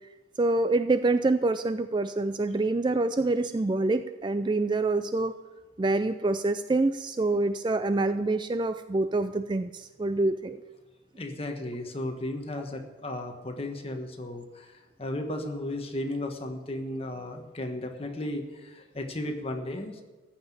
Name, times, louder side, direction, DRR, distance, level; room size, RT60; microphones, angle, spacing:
voice 1, 0.4-5.4 5.8-10.6, right 2 dB, 25° right, 11 dB, 0.3 m, -26 dB
voice 2, 11.2-14.7 15.0-20.0, left 1 dB, 30° left, 4 dB, 1.3 m, -35 dB
14.5 x 5.9 x 9.2 m, 1.3 s
head